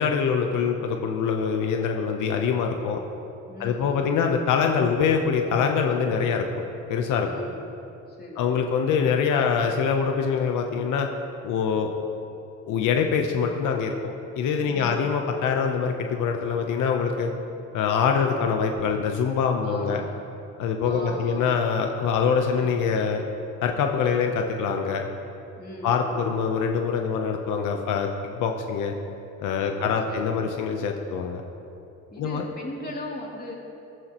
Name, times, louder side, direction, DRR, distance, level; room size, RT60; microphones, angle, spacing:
voice 1, 0.0-3.0 3.6-6.5 6.9-7.3 8.4-11.1 11.4-11.9 12.7-13.9 14.4-17.3 17.7-20.0 20.6-23.2 23.6-25.0 25.8-28.9 29.4-31.4 32.2-32.4, left 6 dB, 85° left, 3 dB, 0.9 m, -24 dB
voice 2, 3.5-4.2 7.2-7.6 8.1-9.0 14.7-15.1 19.6-20.1 20.8-21.5 25.6-26.3 29.5-30.9 32.1-33.5, left 1 dB, 30° left, -3 dB, 2.9 m, -39 dB
14.5 x 13.5 x 3.0 m, 2.8 s
cardioid pair, 90°, 30 cm